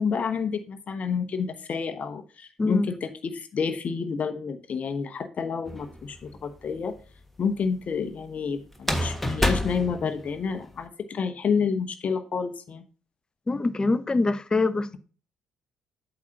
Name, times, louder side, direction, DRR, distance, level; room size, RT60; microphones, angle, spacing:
voice 1, 0.0-6.9 7.4-12.8, left 5 dB, 45° left, 0.9 m, -29 dB
sound 1, 5.7-6.3 8.7-10.7, left 1 dB, 5° left, 1.6 m, -28 dB
voice 2, 13.5-15.0, left 3 dB, 25° left, 0.7 m, -24 dB
8.3 x 6.9 x 2.8 m
figure-of-eight pair, 45°, 4 cm